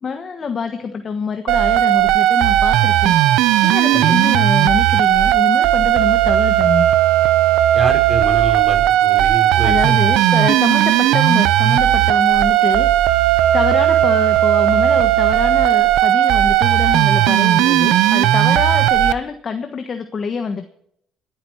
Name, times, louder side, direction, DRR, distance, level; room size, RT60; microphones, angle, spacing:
voice 1, 0.0-3.2 3.6-6.9 9.6-12.9 13.5-20.7, left 5 dB, 40° left, 7 dB, 1.3 m, -25 dB
sound 1, 1.5-19.1, right 13 dB, 80° right, 0.7 m, -15 dB
voice 2, 7.7-9.9, right 2 dB, 15° right, 1 dB, 5.2 m, -26 dB
27.5 x 9.2 x 4.6 m, 0.71 s
cardioid pair, 100°, 0 cm